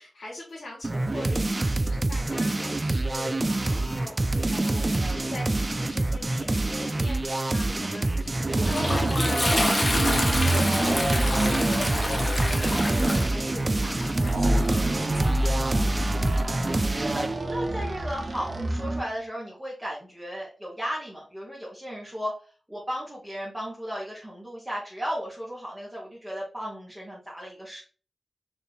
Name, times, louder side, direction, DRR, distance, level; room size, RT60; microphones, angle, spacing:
voice 1, 0.0-3.3 3.6-5.5 5.7-9.5 9.8-15.8, left 2 dB, 75° left, -7 dB, 1.5 m, -41 dB
sound 1, 0.8-17.4, right 2 dB, 30° right, 0.3 m, -27 dB
voice 2, 4.9-5.4 16.1-22.3 22.7-27.8, equal, 10° right, -5 dB, 1.1 m, -35 dB
Toilet flush, 8.1-16.4, left 1 dB, 30° left, 0.9 m, -30 dB
sound 2, 8.3-19.1, right 1 dB, 45° right, 0.7 m, -28 dB
4.3 x 2.6 x 3.4 m, 0.38 s
wide cardioid pair, 100°, 0 cm